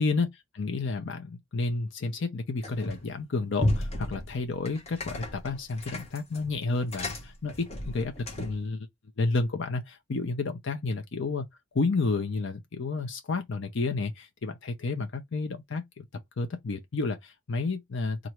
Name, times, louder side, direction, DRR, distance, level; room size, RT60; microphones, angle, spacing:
voice 1, 0.0-8.9 9.2-11.4 11.7-16.0 16.4-18.2, left 3 dB, 60° left, 0.6 m, -31 dB
sound 1, 2.6-3.1 3.6-8.7, left 1 dB, 30° left, 0.9 m, -33 dB
3.0 x 2.6 x 4.3 m
head